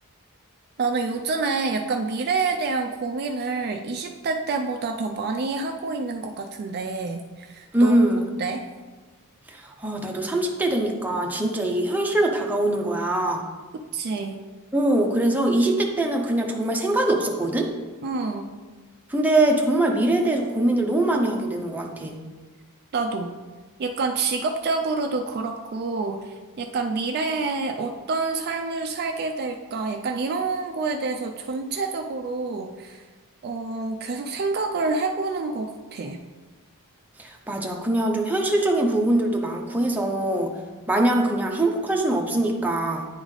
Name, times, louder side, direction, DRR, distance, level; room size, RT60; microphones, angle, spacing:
voice 1, 0.8-7.9 8.4-8.6 13.9-14.4 18.0-18.5 22.9-23.3 23.8-33.0 33.4-36.2, right 4 dB, 45° right, 4 dB, 0.4 m, -27 dB
voice 2, 7.7-8.3 9.5-13.4 14.7-17.7 19.1-22.1 37.2-40.5 40.9-43.1, right 1 dB, 10° right, 0 dB, 0.6 m, -22 dB
9.6 x 3.9 x 3.2 m, 1.3 s
head